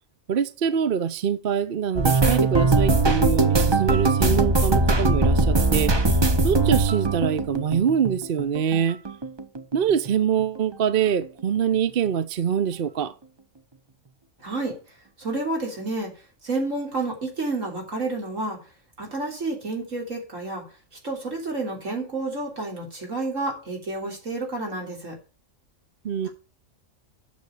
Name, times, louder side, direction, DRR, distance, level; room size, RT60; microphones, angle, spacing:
voice 1, 0.3-5.9 6.4-9.0 9.7-13.1 26.0-26.3, right 8 dB, 50° right, 0.8 m, -24 dB
sound 1, 2.0-8.8 9.1-10.1 10.4-10.7 11.1-11.3, right 3 dB, 25° right, 0.8 m, -21 dB
voice 2, 14.4-14.7 15.2-16.1 16.4-18.6 19.0-20.6 21.0-25.1 26.2-26.3, right 2 dB, 75° right, 3.8 m, -30 dB
9.4 x 7.1 x 6.3 m
omnidirectional pair, 1.3 m